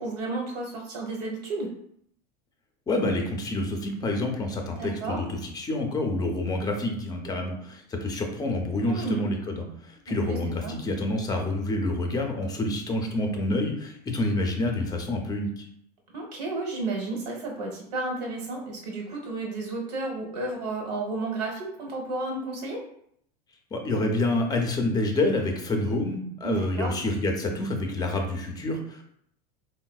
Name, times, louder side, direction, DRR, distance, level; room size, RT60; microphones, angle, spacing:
voice 1, 0.0-1.7 4.8-5.2 8.8-9.3 10.3-10.8 16.1-22.8 26.4-27.0, right 3 dB, 80° right, 0 dB, 1.1 m, -32 dB
voice 2, 2.9-15.6 23.7-29.0, left 2 dB, 20° left, 3 dB, 0.6 m, -28 dB
3.8 x 2.1 x 2.3 m, 0.69 s
supercardioid pair, 115°, 20 cm